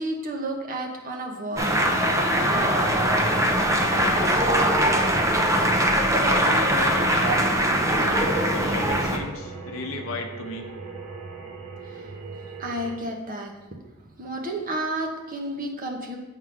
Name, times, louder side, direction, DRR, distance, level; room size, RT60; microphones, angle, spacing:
voice 1, 0.0-1.8 2.3-2.6 11.8-12.1 12.6-13.5 14.0-16.2, right 1 dB, 40° right, 1 dB, 1.1 m, -32 dB
sound 1, 1.6-9.2, right 1 dB, 15° right, 0.6 m, -21 dB
voice 2, 6.2-7.3 8.5-10.7, left 3 dB, 70° left, 3 dB, 0.8 m, -33 dB
sound 2, 7.1-13.0, right 4 dB, 75° right, 1.1 m, -40 dB
7.6 x 3.8 x 6.1 m, 1.1 s
head